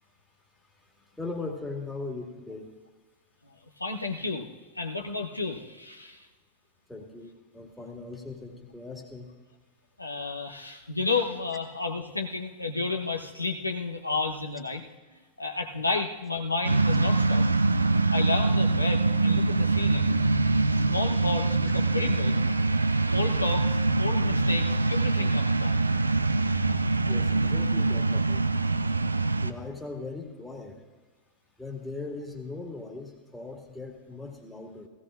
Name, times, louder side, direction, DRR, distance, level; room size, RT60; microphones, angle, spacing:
voice 1, 1.2-2.7 6.9-9.3 27.1-28.4 29.4-30.8 31.6-34.9, left 3 dB, 5° left, 0 dB, 1.8 m, -39 dB
voice 2, 3.4-4.5 4.7-6.3 10.0-14.8 15.1-17.4 18.1-20.1 20.7-22.4 23.1-25.8, left 3 dB, 85° left, 2 dB, 0.9 m, -32 dB
sound 1, 16.6-29.5, right 3 dB, 80° right, 0.4 m, -24 dB
17.0 x 16.5 x 2.5 m, 1.3 s
figure-of-eight pair, 90°, 0 cm